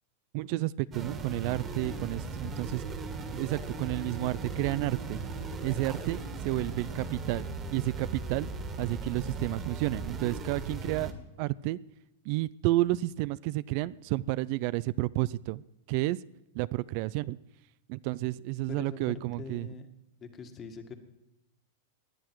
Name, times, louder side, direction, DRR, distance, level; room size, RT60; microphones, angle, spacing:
voice 1, 0.3-2.8 3.3-5.3 5.6-8.5 8.8-11.8 12.3-16.2 16.5-17.4 17.9-19.7, right 18 dB, 55° right, 19 dB, 0.4 m, -31 dB
sound 1, 0.9-11.1, right 3 dB, 25° right, 2.0 m, -38 dB
voice 2, 19.4-19.9 20.2-20.9, left 6 dB, 30° left, 6 dB, 1.9 m, -43 dB
19.0 x 11.0 x 4.7 m, 0.88 s
hypercardioid pair, 125°, 0 cm